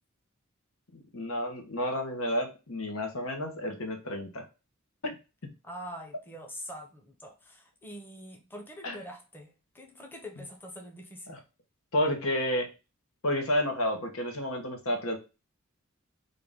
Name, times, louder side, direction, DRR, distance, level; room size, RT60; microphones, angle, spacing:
voice 1, 0.9-4.4 5.0-5.1 8.8-9.0 11.3-11.4 11.9-12.7 13.2-15.2, left 1 dB, 85° left, 1.1 m, -30 dB
voice 2, 5.6-11.4, equal, 10° left, 0.8 m, -44 dB
3.8 x 2.6 x 3.6 m
head